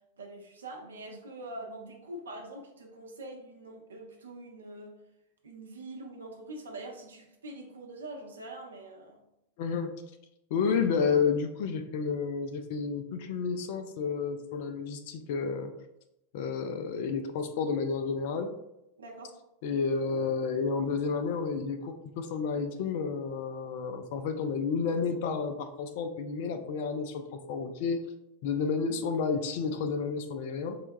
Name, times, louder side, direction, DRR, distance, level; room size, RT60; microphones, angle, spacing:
voice 1, 0.2-5.0 5.4-9.2 19.0-19.4, right 2 dB, 70° right, 2 dB, 0.6 m, -44 dB
voice 2, 9.6-9.9 10.5-15.7 16.3-18.5 19.6-28.0 28.4-30.8, left 5 dB, 50° left, 7 dB, 0.4 m, -31 dB
4.2 x 2.2 x 2.6 m, 0.86 s
figure-of-eight pair, 90°, 0 cm